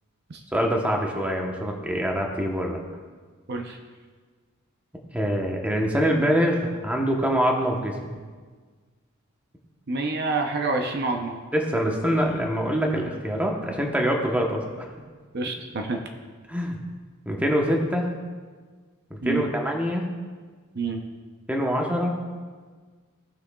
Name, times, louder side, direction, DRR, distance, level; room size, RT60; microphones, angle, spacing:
voice 1, 0.5-2.8 5.1-8.2 11.5-14.9 16.5-16.8 17.3-18.1 19.1-20.1 21.5-22.2, equal, 5° right, 0 dB, 0.9 m, -24 dB
voice 2, 9.9-11.4 15.3-16.0 19.2-19.5 20.8-21.0, right 3 dB, 50° right, 3 dB, 0.6 m, -27 dB
17.0 x 6.1 x 2.3 m, 1.5 s
head